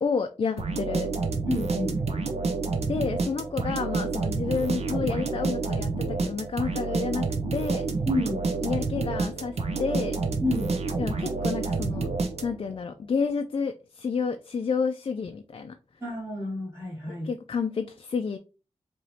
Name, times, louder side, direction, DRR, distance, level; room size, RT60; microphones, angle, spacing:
voice 1, 0.0-1.1 2.9-7.2 7.5-7.9 8.6-10.2 11.0-12.1 12.4-15.7 17.1-18.4, left 5 dB, 50° left, 7 dB, 0.4 m, -30 dB
sound 1, 0.6-12.8, right 3 dB, 65° right, 0.8 m, -29 dB
voice 2, 1.5-2.0 8.1-8.4 10.4-10.7 16.0-17.3, left 1 dB, 20° right, -5 dB, 1.9 m, -29 dB
4.8 x 2.9 x 2.7 m, 0.32 s
wide cardioid pair, 115°, 12 cm